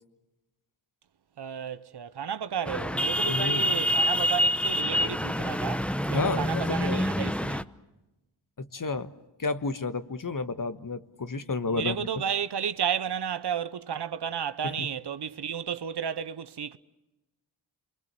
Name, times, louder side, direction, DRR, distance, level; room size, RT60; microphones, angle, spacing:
voice 1, 1.4-7.6 11.7-16.8, right 8 dB, 55° right, 0.9 m, -32 dB
sound 1, 2.7-7.6, equal, ahead, 0.8 m, -27 dB
voice 2, 3.3-3.8 6.1-7.1 8.6-9.1 9.4-12.1 14.6-14.9, left 3 dB, 40° left, 1.4 m, -31 dB
28.0 x 23.0 x 6.9 m
cardioid pair, 55°, 47 cm